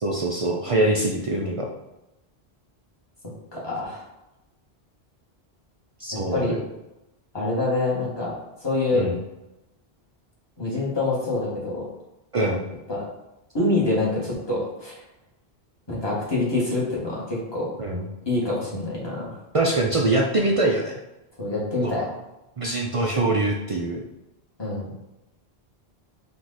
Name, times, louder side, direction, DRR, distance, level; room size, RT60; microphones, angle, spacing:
voice 1, 0.0-1.7 6.0-6.6 8.9-9.2 12.3-12.6 17.8-18.1 19.5-20.9 21.8-22.1 22.6-24.0, right 2 dB, 50° right, 0 dB, 0.4 m, -23 dB
voice 2, 3.5-4.0 6.1-6.6 7.3-9.0 10.6-11.9 12.9-13.0 13.5-14.9 15.9-17.7 18.2-19.4 21.4-22.1 24.6-24.9, left 2 dB, 25° left, -7 dB, 1.5 m, -26 dB
4.6 x 2.5 x 4.0 m, 0.94 s
omnidirectional pair, 1.1 m